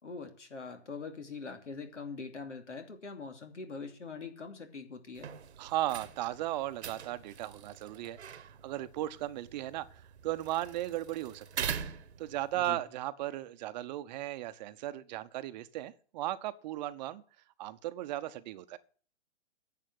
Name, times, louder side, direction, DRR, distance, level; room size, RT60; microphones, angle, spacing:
voice 1, 0.0-5.3 12.5-12.8, left 4 dB, 80° left, 2.9 m, -43 dB
sound 1, 5.1-12.6, right 8 dB, 65° right, 1.3 m, -43 dB
voice 2, 5.6-11.7 12.2-17.2 17.6-18.8, right 14 dB, 40° right, 0.9 m, -36 dB
10.5 x 7.4 x 9.5 m
figure-of-eight pair, 125°, 35 cm